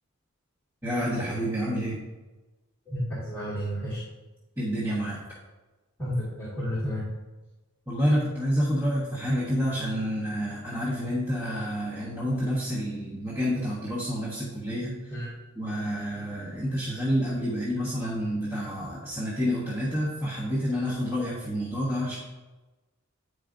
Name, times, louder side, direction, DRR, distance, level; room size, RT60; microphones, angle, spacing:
voice 1, 0.8-2.0 4.6-5.2 7.9-15.2 15.5-22.2, equal, 15° right, -10 dB, 1.3 m, -28 dB
voice 2, 2.9-4.0 6.0-7.0 15.1-15.3, equal, 10° left, -11 dB, 1.8 m, -31 dB
9.5 x 4.9 x 2.5 m, 1.2 s
head